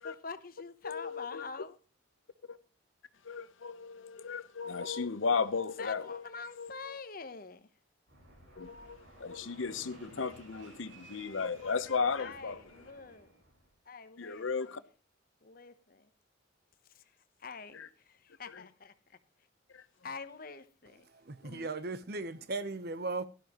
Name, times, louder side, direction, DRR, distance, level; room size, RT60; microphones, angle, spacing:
voice 1, 0.0-1.8 5.8-7.6 12.2-13.3 13.9-14.5 15.4-16.1 17.4-17.8 18.1-18.9 20.0-21.1, left 4 dB, 45° left, 0.9 m, -45 dB
voice 2, 0.8-1.5 2.5-2.6 3.2-6.3 6.6-7.0 8.6-12.8 14.2-14.8 17.7-17.9 18.5-18.7 19.7-19.8 21.4-21.7, left 5 dB, 80° left, 0.8 m, -35 dB
Fixed-wing aircraft airplane, 8.1-13.7, right 1 dB, 75° right, 5.8 m, -55 dB
voice 3, 21.3-23.3, right 3 dB, 55° right, 0.8 m, -37 dB
17.0 x 12.0 x 3.0 m
head